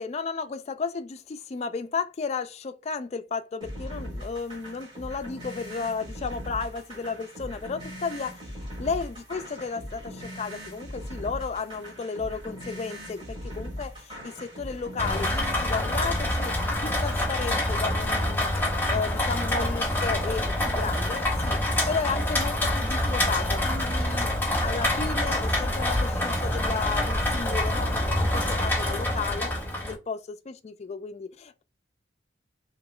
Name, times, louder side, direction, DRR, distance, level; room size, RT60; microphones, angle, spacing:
voice 1, 0.0-8.4 8.8-16.5 16.8-18.5 18.9-21.6 21.9-24.3 24.6-29.5 29.8-31.6, left 5 dB, 35° left, 0.3 m, -33 dB
sound 1, 3.6-15.6, equal, 25° right, 2.2 m, -40 dB
Rain, 15.0-29.9, left 1 dB, 10° left, 0.9 m, -26 dB
4.8 x 2.9 x 2.4 m
head